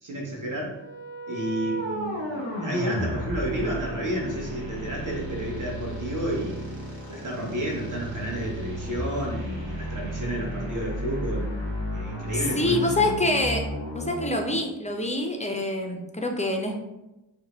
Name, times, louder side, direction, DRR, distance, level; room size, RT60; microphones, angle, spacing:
voice 1, 0.0-0.8 1.3-6.7 7.1-11.5 11.9-13.1, right 1 dB, 40° right, -1 dB, 0.8 m, -31 dB
sound 1, 0.7-14.6, equal, 70° right, 1.1 m, -33 dB
voice 2, 12.6-13.6 13.9-16.8, left 2 dB, 15° left, 3 dB, 0.3 m, -26 dB
2.6 x 2.1 x 2.9 m, 0.98 s
cardioid pair, 50°, 47 cm